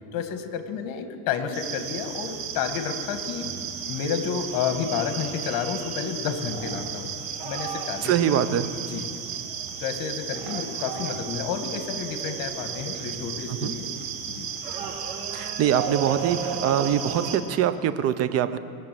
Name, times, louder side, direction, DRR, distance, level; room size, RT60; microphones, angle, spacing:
voice 1, 0.1-3.5 3.9-7.1 7.4-8.1 8.9-9.1 9.8-13.9 14.3-14.5, left 7 dB, 50° left, 8 dB, 1.7 m, -30 dB
sound 1, 1.5-17.4, right 7 dB, 70° right, 2.0 m, -33 dB
voice 2, 8.0-8.7 13.5-13.7 15.3-18.6, right 9 dB, 35° right, 12 dB, 0.7 m, -24 dB
20.5 x 7.4 x 7.6 m, 2.5 s
supercardioid pair, 125°, 43 cm